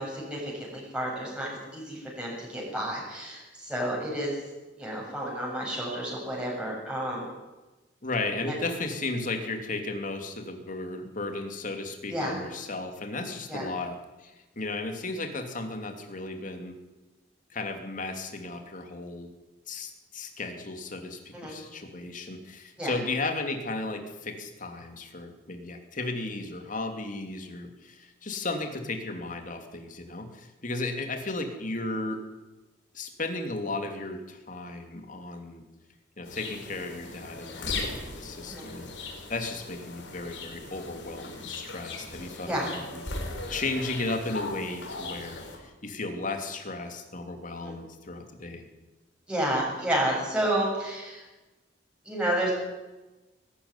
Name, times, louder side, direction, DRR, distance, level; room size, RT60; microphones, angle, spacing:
voice 1, 0.0-4.3 4.8-7.3 8.4-8.6 12.1-12.4 13.5-13.7 21.3-21.6 22.8-23.0 38.5-38.6 42.5-42.7 47.6-47.7 49.3-51.2 52.0-52.5, right 1 dB, 5° right, -4 dB, 7.5 m, -31 dB
voice 2, 8.0-16.7 17.5-19.3 19.7-32.2 32.9-35.6 36.2-43.0 43.3-48.6, left 2 dB, 45° left, 5 dB, 3.0 m, -35 dB
sound 1, 36.2-45.6, left 3 dB, 90° left, 4.8 m, -38 dB
21.0 x 13.0 x 9.8 m, 1.1 s
head